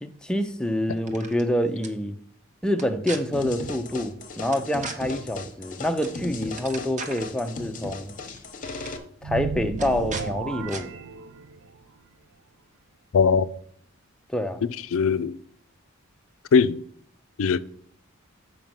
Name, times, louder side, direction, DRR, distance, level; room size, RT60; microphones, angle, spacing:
voice 1, 0.0-2.2 2.6-8.1 9.2-10.9 14.3-14.6, left 1 dB, 5° left, 0.5 m, -27 dB
sound 1, 1.0-1.4 1.8-1.9 2.7-3.2 4.5-5.0 6.0-6.2 6.4-7.3 8.2-8.4 8.7-8.9 9.8-10.3 10.7-10.8, right 4 dB, 35° right, 0.9 m, -37 dB
sound 2, 3.3-9.0, left 3 dB, 35° left, 1.0 m, -37 dB
sound 3, 9.2-11.8, right 5 dB, 75° right, 0.5 m, -33 dB
voice 2, 13.1-13.5 14.9-15.4 16.5-16.8 17.4-17.6, left 6 dB, 65° left, 0.4 m, -20 dB
7.3 x 5.2 x 5.4 m
head